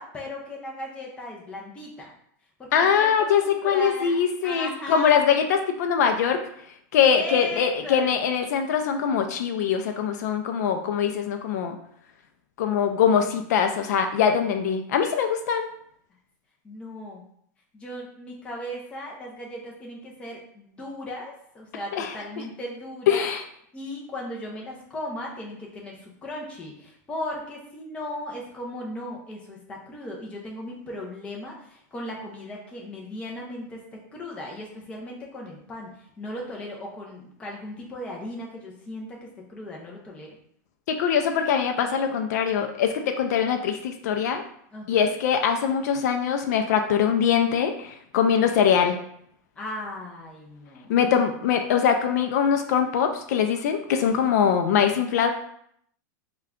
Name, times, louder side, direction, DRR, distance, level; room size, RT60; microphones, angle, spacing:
voice 1, 0.0-2.1 2.6-5.3 7.0-8.1 16.6-17.2 17.7-23.3 23.7-33.8 34.1-35.9 36.2-40.3 44.7-45.1 48.1-48.6 49.6-50.9, left 1 dB, 10° left, -2 dB, 0.6 m, -37 dB
voice 2, 2.7-6.4 6.9-11.8 12.6-15.7 21.9-22.4 23.1-23.4 40.9-44.4 44.9-49.0 50.9-55.3, left 7 dB, 65° left, 6 dB, 0.4 m, -22 dB
3.6 x 2.2 x 3.5 m, 0.68 s
supercardioid pair, 170°, 10 cm